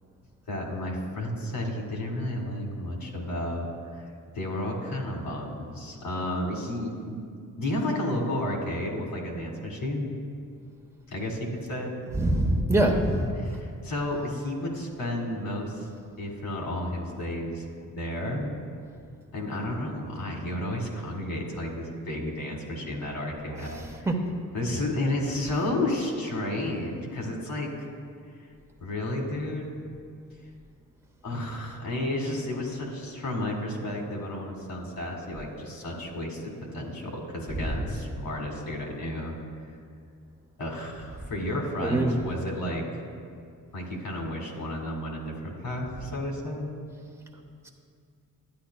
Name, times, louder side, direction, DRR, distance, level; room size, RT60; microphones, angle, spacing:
voice 1, 0.5-4.0 4.3-7.2 7.6-10.1 11.1-11.9 13.4-15.8 16.2-18.5 19.3-23.8 24.5-27.7 28.8-29.7 31.2-39.3 40.6-42.8 43.7-46.7, left 1 dB, 80° left, -1 dB, 1.8 m, -32 dB
voice 2, 12.2-13.3 24.1-24.2 41.8-42.1, right 1 dB, 10° right, 1 dB, 1.0 m, -23 dB
11.5 x 9.3 x 2.2 m, 2.3 s
cardioid pair, 75°, 34 cm